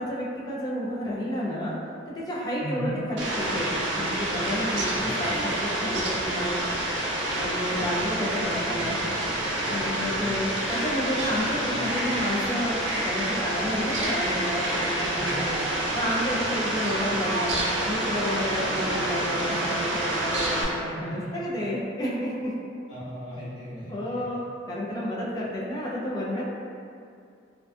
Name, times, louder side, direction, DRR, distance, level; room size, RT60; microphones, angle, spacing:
voice 1, 0.0-1.7 2.1-6.6 7.3-9.0 9.6-12.8 13.0-15.6 15.9-17.6 17.9-22.5 23.9-26.4, equal, 20° left, -6 dB, 0.3 m, -30 dB
voice 2, 2.6-3.0 4.9-5.3 7.7-8.1 8.5-9.0 10.0-10.4 11.6-11.8 15.1-15.3 21.1-21.6 22.9-24.4, right 1 dB, 65° left, -13 dB, 1.3 m, -39 dB
Fowl, 3.2-20.6, right 1 dB, 70° right, 0.4 m, -28 dB
2.4 x 2.2 x 2.3 m, 2.4 s
head